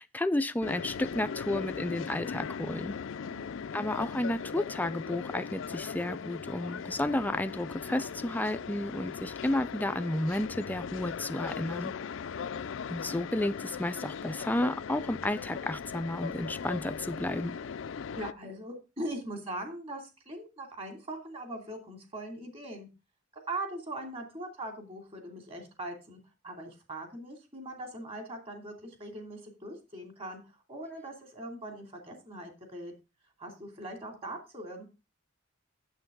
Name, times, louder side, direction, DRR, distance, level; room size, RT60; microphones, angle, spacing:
voice 1, 0.0-3.0 3.7-11.9 12.9-17.5, left 1 dB, 10° left, 0.4 m, -32 dB
sound 1, 0.6-18.3, left 6 dB, 70° left, 0.4 m, -39 dB
voice 2, 18.2-22.9 23.5-26.2 26.4-30.4 30.7-32.9 33.4-34.8, right 1 dB, 30° right, 2.7 m, -41 dB
9.1 x 7.8 x 3.7 m
head